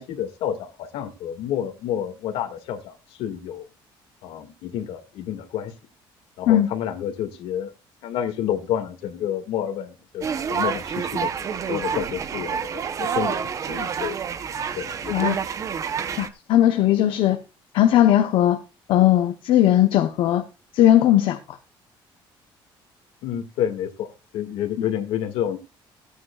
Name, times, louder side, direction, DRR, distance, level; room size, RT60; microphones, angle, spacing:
voice 1, 0.0-3.7 4.2-5.7 6.4-7.7 8.0-14.2 14.5-15.3 23.2-25.6, left 10 dB, 80° left, 2.0 m, -29 dB
sound 1, 10.2-16.3, right 7 dB, 35° right, 0.8 m, -28 dB
voice 2, 16.2-17.4 17.7-18.6 18.9-20.4 20.7-21.6, left 12 dB, 65° left, 0.9 m, -18 dB
16.5 x 9.4 x 2.4 m
cardioid pair, 155°, 9 cm